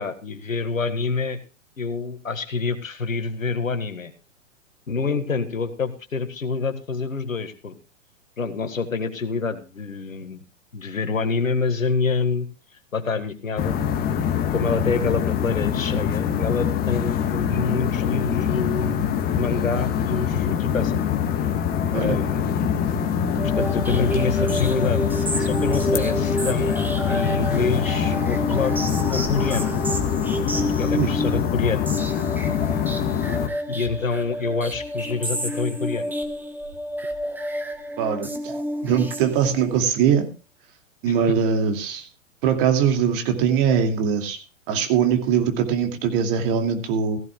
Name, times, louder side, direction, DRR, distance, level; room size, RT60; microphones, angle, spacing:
voice 1, 0.0-1.4 1.8-4.1 4.9-7.8 8.4-10.4 10.7-12.5 12.9-13.8 14.5-21.0 21.9-22.5 23.5-25.0 25.4-28.8 29.1-29.8 30.8-31.9 33.7-36.1 41.1-41.2, left 4 dB, 85° left, 8 dB, 1.9 m, -27 dB
sound 1, 13.6-33.5, left 8 dB, 25° left, 1.5 m, -24 dB
sound 2, 23.3-39.8, equal, 5° right, 1.2 m, -29 dB
voice 2, 38.0-38.5 38.8-40.3 41.0-42.1 42.4-44.4 44.7-47.2, right 7 dB, 40° right, 5 dB, 2.6 m, -21 dB
16.0 x 15.5 x 2.4 m, 0.33 s
hypercardioid pair, 115°, 39 cm